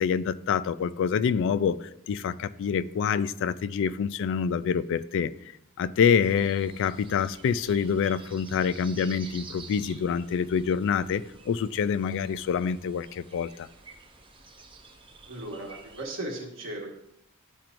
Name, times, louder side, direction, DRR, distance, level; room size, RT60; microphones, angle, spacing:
voice 1, 0.0-5.3 5.8-13.7, left 7 dB, 60° left, 0.3 m, -26 dB
sound 1, 6.2-16.0, right 4 dB, 25° right, 0.7 m, -50 dB
voice 2, 15.2-16.9, right 1 dB, 65° right, 1.5 m, -36 dB
11.5 x 4.4 x 2.6 m
head